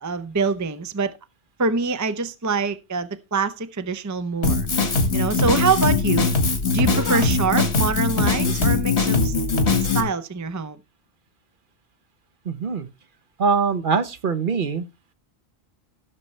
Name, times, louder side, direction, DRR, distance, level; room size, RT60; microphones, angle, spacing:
voice 1, 0.0-1.2 1.6-4.7 5.1-6.3 6.7-9.3 9.9-10.8, right 4 dB, 20° right, 0.6 m, -25 dB
Drum kit, 4.4-10.0, left 4 dB, 90° left, 2.0 m, -21 dB
voice 2, 12.4-12.9 13.4-14.8, right 5 dB, 55° right, 1.1 m, -23 dB
16.5 x 6.7 x 3.2 m
omnidirectional pair, 1.1 m